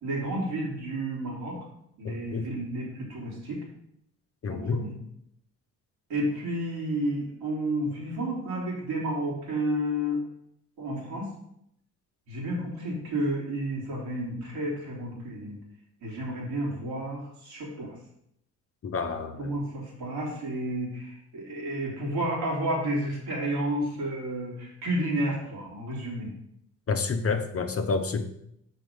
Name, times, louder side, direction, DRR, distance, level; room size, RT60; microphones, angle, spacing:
voice 1, 0.0-1.5 2.0-3.6 4.5-4.9 6.1-10.2 10.8-11.3 12.3-15.5 16.0-17.9 19.4-26.3, right 1 dB, 70° right, -3 dB, 3.0 m, -31 dB
voice 2, 2.0-2.5 4.4-4.9 18.8-19.5 26.9-28.2, left 4 dB, 35° left, 6 dB, 0.9 m, -29 dB
6.2 x 4.5 x 5.2 m, 0.74 s
hypercardioid pair, 55°, 39 cm